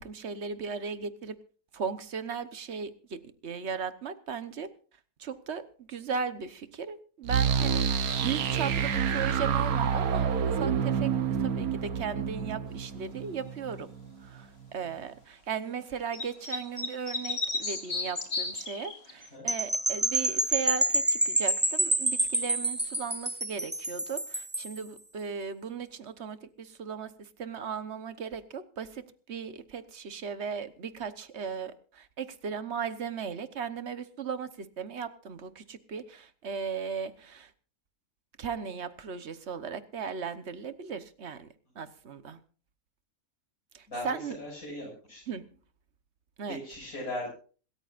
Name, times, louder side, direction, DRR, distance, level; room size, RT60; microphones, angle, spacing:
voice 1, 0.0-1.4 1.7-4.7 5.2-11.1 11.4-13.9 14.2-37.5 38.4-41.5 41.7-42.4 43.7-44.4 45.3-45.5 46.4-46.6, right 6 dB, 50° right, 12 dB, 1.3 m, -37 dB
sound 1, 7.3-14.1, right 7 dB, 75° right, 1.4 m, -28 dB
sound 2, 16.1-19.3, left 3 dB, 45° left, 2.7 m, -33 dB
sound 3, 19.5-24.8, right 1 dB, 15° right, 0.3 m, -28 dB
voice 2, 43.9-45.2 46.5-47.3, left 1 dB, 70° left, -5 dB, 7.0 m, -38 dB
26.5 x 13.5 x 2.5 m, 0.40 s
omnidirectional pair, 1.5 m